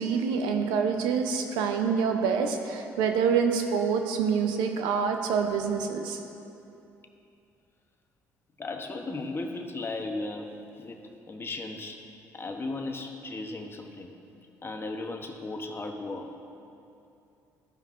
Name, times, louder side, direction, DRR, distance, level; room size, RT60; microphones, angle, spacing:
voice 1, 0.0-6.2, right 6 dB, 80° right, 4 dB, 0.6 m, -26 dB
voice 2, 8.6-11.0 11.3-12.1 12.3-14.1 14.6-16.3, left 2 dB, 30° left, 4 dB, 0.9 m, -36 dB
13.0 x 5.3 x 2.5 m, 2.7 s
supercardioid pair, 65°, 8 cm